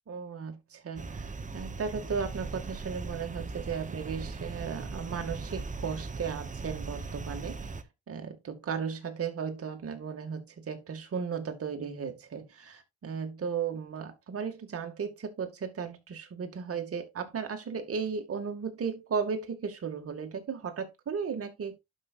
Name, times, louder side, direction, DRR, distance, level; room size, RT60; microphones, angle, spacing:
voice 1, 0.1-7.6 8.1-21.8, right 6 dB, 50° right, 2.4 m, -35 dB
sound 1, 1.0-7.8, right 3 dB, 25° right, 1.1 m, -39 dB
11.5 x 5.3 x 2.6 m
cardioid pair, 90°, 30 cm